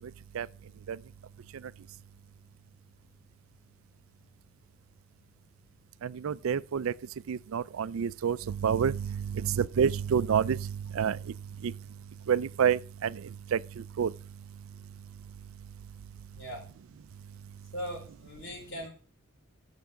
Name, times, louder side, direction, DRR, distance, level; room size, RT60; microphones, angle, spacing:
voice 1, 6.0-6.9 7.3-11.2 11.6-11.7 12.3-14.1, right 7 dB, 80° right, 0.4 m, -28 dB
voice 2, 16.3-16.7 17.7-18.9, equal, 60° left, 4.6 m, -39 dB
8.2 x 7.2 x 5.1 m
head